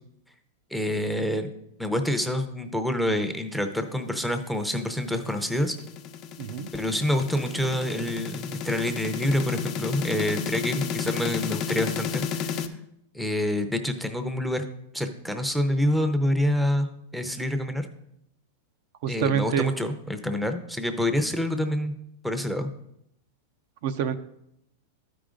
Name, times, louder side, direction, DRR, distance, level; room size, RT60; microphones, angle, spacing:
voice 1, 0.7-1.5 1.8-5.8 6.7-12.6 13.1-14.7 14.9-16.9 17.1-17.9 19.1-21.9 22.2-22.7, left 1 dB, ahead, 8 dB, 0.7 m, -27 dB
sound 1, 4.6-12.7, left 7 dB, 40° left, 0.7 m, -32 dB
voice 2, 6.4-6.7 19.0-19.7 23.8-24.2, right 8 dB, 60° right, 8 dB, 0.6 m, -26 dB
12.5 x 5.1 x 3.8 m, 0.78 s
hypercardioid pair, 125°, 0 cm